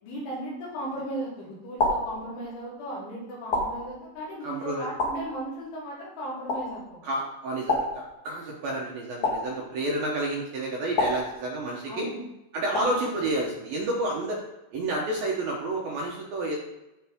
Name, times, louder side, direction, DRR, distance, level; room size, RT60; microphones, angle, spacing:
voice 1, 0.0-7.0 11.9-12.2 12.7-12.9, right 1 dB, 80° left, -8 dB, 6.0 m, -36 dB
sound 1, 0.7-1.1 1.8-2.8 3.5-4.4 5.0-5.8 6.5-7.1 7.7-8.6 9.2-10.1 11.0-11.9 12.7-13.3, left 2 dB, 55° left, 2.3 m, -31 dB
voice 2, 4.4-4.9 7.0-7.8 8.2-12.1 12.5-14.4 14.7-16.6, right 1 dB, 70° right, -2 dB, 2.4 m, -30 dB
14.0 x 5.0 x 3.6 m, 0.94 s
omnidirectional pair, 5.4 m